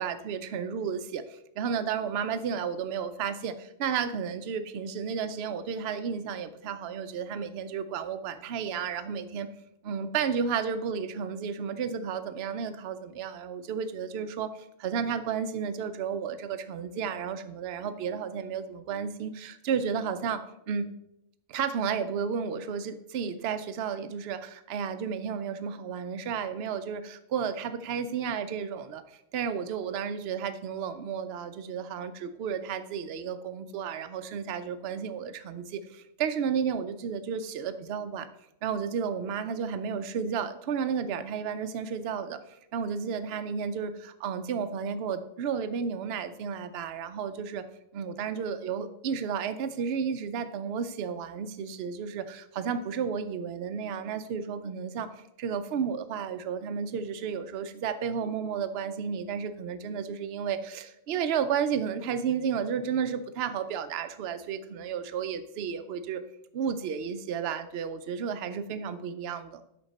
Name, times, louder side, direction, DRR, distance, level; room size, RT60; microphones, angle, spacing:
voice 1, 0.0-9.5 9.8-20.9 21.5-29.0 29.3-38.3 38.6-47.6 47.9-55.1 55.4-66.2 66.5-69.6, right 7 dB, 60° right, 10 dB, 0.8 m, -32 dB
8.7 x 5.7 x 4.1 m, 0.81 s
omnidirectional pair, 1.3 m